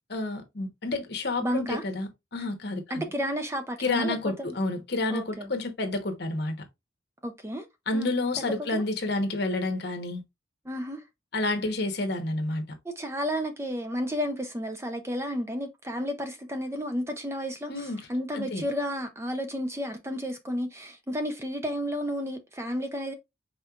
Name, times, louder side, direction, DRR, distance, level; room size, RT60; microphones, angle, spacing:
voice 1, 0.1-3.0 3.8-6.6 7.9-10.2 11.3-12.6 17.7-18.1 18.3-18.7, left 2 dB, 55° left, 1.0 m, -29 dB
voice 2, 1.4-1.8 2.9-4.5 5.1-5.5 7.2-7.7 7.9-8.8 10.7-11.0 12.8-23.1, equal, 15° right, 0.5 m, -32 dB
5.3 x 3.7 x 2.4 m
head